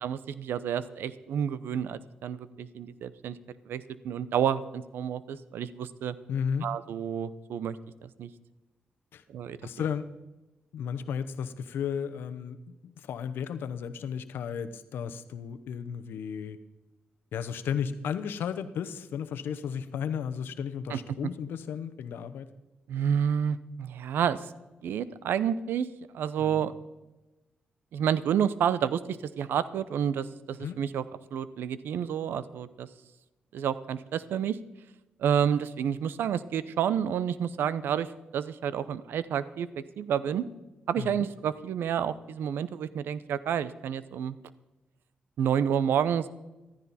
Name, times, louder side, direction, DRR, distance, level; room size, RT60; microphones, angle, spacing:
voice 1, 0.0-3.4 3.7-6.2 6.6-7.8 8.0-8.3 9.3-9.6 20.9-21.0 22.9-24.4 24.8-25.9 26.1-26.7 27.9-29.0 29.4-31.0 31.3-32.9 33.5-34.6 35.2-38.1 38.3-40.4 40.9-44.4 45.4-46.3, right 8 dB, 90° right, 16 dB, 0.6 m, -29 dB
voice 2, 6.3-6.7 9.1-9.2 9.6-10.1 10.7-16.6 17.3-22.5 26.4-26.7 30.6-30.8 41.0-41.3, left 7 dB, 90° left, 11 dB, 0.8 m, -34 dB
14.5 x 13.5 x 4.2 m, 1.1 s
cardioid pair, 75°, 4 cm